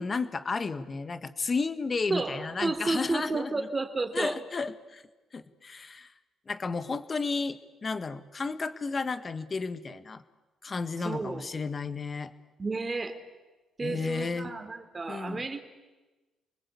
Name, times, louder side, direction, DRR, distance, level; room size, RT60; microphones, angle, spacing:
voice 1, 0.0-3.7 4.1-5.0 5.3-6.1 6.5-10.2 10.6-12.3 13.8-14.5 15.1-15.4, left 4 dB, 35° left, 11 dB, 1.8 m, -33 dB
voice 2, 2.1-4.4 11.0-11.5 12.6-13.2 13.8-15.6, right 3 dB, 30° right, 7 dB, 3.3 m, -32 dB
29.0 x 20.5 x 8.6 m, 1.2 s
cardioid pair, 90°, 0 cm